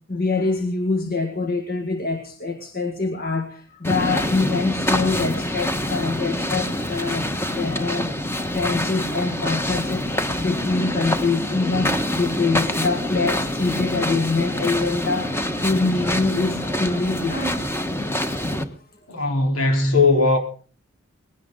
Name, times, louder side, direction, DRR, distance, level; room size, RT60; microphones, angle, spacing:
voice 1, 0.1-8.1 8.5-17.9, left 3 dB, 45° left, 1.9 m, -25 dB
sound 1, 3.8-18.6, left 1 dB, 10° left, 1.4 m, -26 dB
voice 2, 19.1-20.4, left 3 dB, 85° left, 4.0 m, -18 dB
20.5 x 17.0 x 3.9 m
head